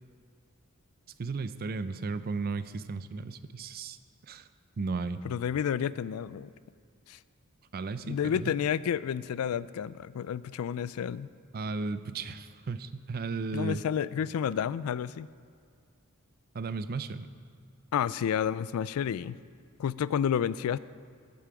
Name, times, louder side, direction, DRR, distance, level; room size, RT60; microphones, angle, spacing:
voice 1, 1.2-4.0 4.3-4.5 4.8-5.2 7.7-8.5 11.5-13.8 16.5-17.3, right 4 dB, 45° right, 13 dB, 0.4 m, -34 dB
voice 2, 5.2-6.5 7.1-7.2 8.0-11.3 13.5-15.3 17.9-19.4 19.8-20.8, left 8 dB, 85° left, 18 dB, 0.3 m, -30 dB
13.5 x 8.5 x 4.9 m, 2.2 s
head